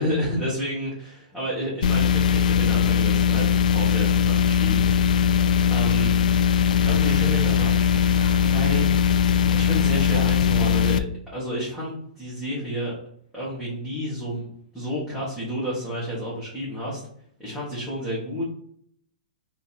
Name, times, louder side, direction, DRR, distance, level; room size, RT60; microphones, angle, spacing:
voice 1, 0.0-5.4 5.7-6.1 6.9-7.7 8.2-8.9 9.5-11.0 11.3-12.9 13.3-14.5 14.7-17.0 17.4-18.4, equal, ahead, -10 dB, 1.3 m, -30 dB
sound 1, 1.8-11.0, left 7 dB, 70° left, 0.3 m, -20 dB
3.4 x 2.9 x 4.3 m, 0.65 s
hypercardioid pair, 155°, 4 cm